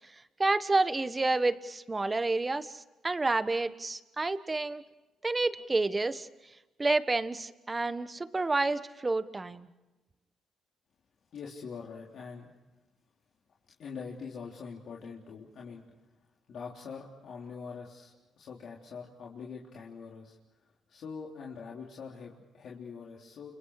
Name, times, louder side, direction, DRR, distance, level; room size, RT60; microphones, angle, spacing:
voice 1, 0.4-4.8 5.2-6.3 6.8-9.7, right 3 dB, 20° right, 12 dB, 1.4 m, -29 dB
voice 2, 11.3-12.5 13.8-15.8 16.5-20.4 20.9-23.5, left 5 dB, 65° left, -3 dB, 3.7 m, -44 dB
29.5 x 29.5 x 4.9 m, 1.1 s
cardioid pair, 90°, 0 cm